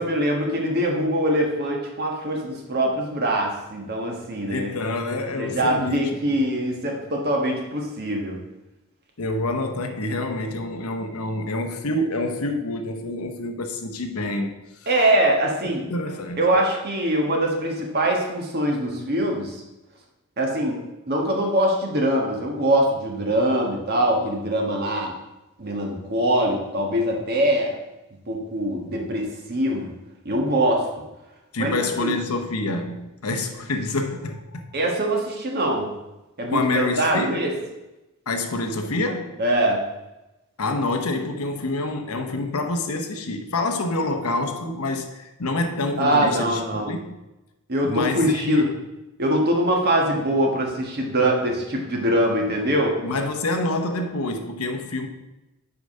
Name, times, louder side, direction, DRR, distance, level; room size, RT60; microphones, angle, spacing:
voice 1, 0.0-4.7 5.4-8.4 14.9-15.8 16.4-19.6 20.4-20.8 21.1-25.1 25.6-27.7 28.3-29.9 30.2-30.9 31.6-32.1 34.7-35.9 36.4-37.5 39.4-39.8 46.0-46.9 47.7-48.7 49.2-53.0, right 1 dB, 45° right, 1.4 m, -23 dB
voice 2, 4.5-6.4 9.2-14.6 15.9-16.4 31.5-34.7 36.5-37.5 38.3-39.4 40.6-47.2 47.8-48.8 53.0-55.1, left 2 dB, 85° left, 0.9 m, -27 dB
8.3 x 4.9 x 5.3 m
head